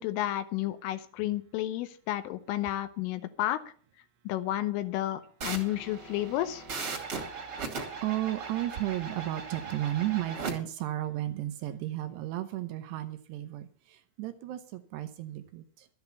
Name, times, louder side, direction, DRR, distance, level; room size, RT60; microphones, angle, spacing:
voice 1, 0.0-3.6 4.3-6.6, left 14 dB, 80° left, 10 dB, 3.4 m, -31 dB
sound 1, 5.4-10.5, right 4 dB, 35° right, 2.4 m, -38 dB
voice 2, 7.2-7.5 8.0-15.9, right 14 dB, 80° right, 10 dB, 2.5 m, -34 dB
13.0 x 9.4 x 6.9 m, 0.43 s
omnidirectional pair, 5.9 m